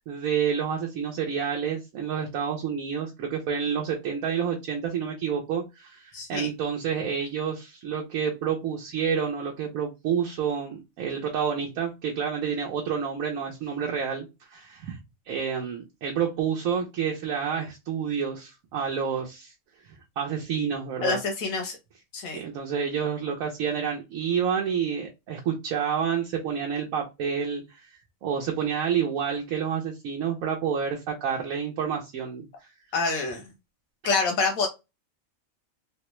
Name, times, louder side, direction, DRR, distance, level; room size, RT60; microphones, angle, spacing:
voice 1, 0.1-15.0 15.3-19.5 20.2-21.2 22.3-32.7, right 7 dB, 90° right, 0 dB, 1.1 m, -29 dB
voice 2, 6.1-6.5 21.0-21.8 22.1-22.4 32.9-33.4 34.0-34.7, left 4 dB, 90° left, 3 dB, 1.2 m, -26 dB
3.5 x 2.1 x 3.0 m, 0.24 s
omnidirectional pair, 1.4 m